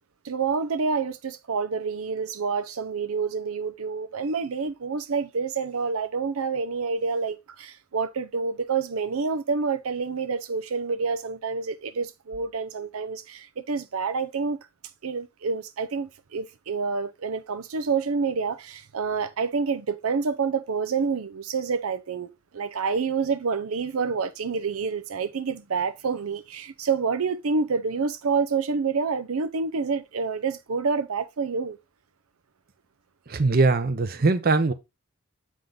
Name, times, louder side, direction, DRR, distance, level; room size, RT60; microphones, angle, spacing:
voice 1, 0.2-14.6 15.0-31.8, right 5 dB, 85° right, 0.6 m, -28 dB
voice 2, 33.3-34.7, right 3 dB, 45° right, 0.6 m, -21 dB
7.8 x 3.7 x 3.8 m
head